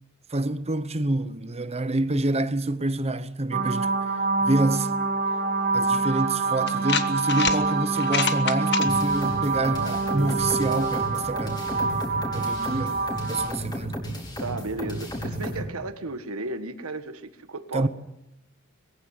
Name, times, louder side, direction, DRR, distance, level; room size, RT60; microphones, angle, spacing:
voice 1, 0.3-3.9 4.4-5.0 5.7-11.6 12.3-14.0 17.7-17.9, right 2 dB, 30° right, 0.9 m, -27 dB
sound 1, 3.5-13.5, right 4 dB, 45° right, 2.6 m, -26 dB
sound 2, 5.9-6.0 6.7-7.6 8.0-8.9, left 8 dB, 50° left, 1.4 m, -26 dB
sound 3, 8.8-15.6, equal, 20° left, 4.7 m, -33 dB
voice 2, 14.4-17.9, right 2 dB, 70° right, 1.6 m, -34 dB
22.0 x 15.5 x 8.1 m
head